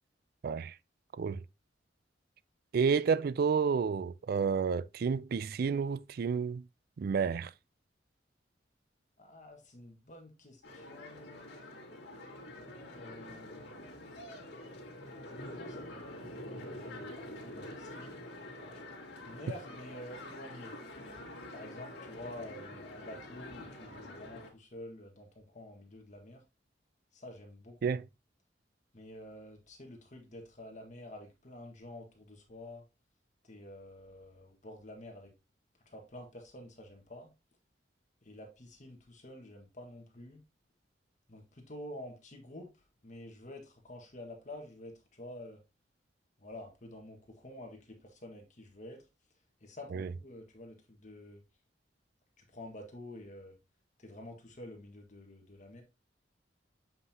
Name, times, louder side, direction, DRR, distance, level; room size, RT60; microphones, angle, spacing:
voice 1, 0.4-0.7 1.2-1.4 2.7-6.6 7.0-7.5 27.8-28.0 49.9-50.1, right 6 dB, 55° right, 0.3 m, -30 dB
voice 2, 9.2-11.6 12.9-13.8 15.2-18.2 19.2-20.7 21.5-26.4 27.1-28.0 28.9-32.8 33.5-35.3 35.8-37.3 38.2-40.4 41.3-42.7 43.0-45.6 46.4-49.0 49.6-51.4 52.5-53.5 54.0-55.8, left 1 dB, 40° left, 1.5 m, -49 dB
sound 1, 10.6-24.5, left 1 dB, 65° left, 2.1 m, -46 dB
7.5 x 5.5 x 2.8 m
head